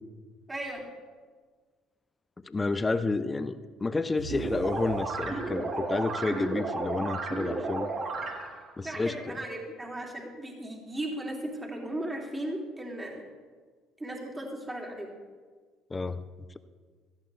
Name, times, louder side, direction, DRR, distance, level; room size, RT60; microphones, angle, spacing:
voice 1, 0.5-0.8 8.8-13.2 14.0-15.1, right 1 dB, 20° right, 0 dB, 2.8 m, -36 dB
voice 2, 2.4-7.9 8.8-9.4 15.9-16.2, left 3 dB, 25° left, 12 dB, 0.8 m, -30 dB
sound 1, 4.2-6.0, right 3 dB, 65° right, 3.6 m, -44 dB
sound 2, 4.3-8.7, right 3 dB, 50° right, 2.4 m, -33 dB
17.0 x 13.5 x 3.4 m, 1.5 s
hypercardioid pair, 70°, 0 cm